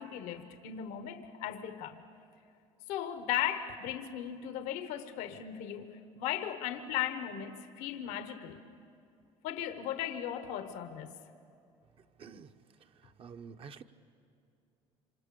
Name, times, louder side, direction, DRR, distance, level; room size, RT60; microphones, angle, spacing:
voice 1, 0.0-2.0 2.9-8.6 9.4-11.2, left 10 dB, 90° left, 9 dB, 1.2 m, -37 dB
voice 2, 12.2-12.5 13.0-13.8, right 6 dB, 50° right, 8 dB, 1.1 m, -48 dB
26.5 x 26.5 x 7.0 m, 2.6 s
cardioid pair, 100°, 12 cm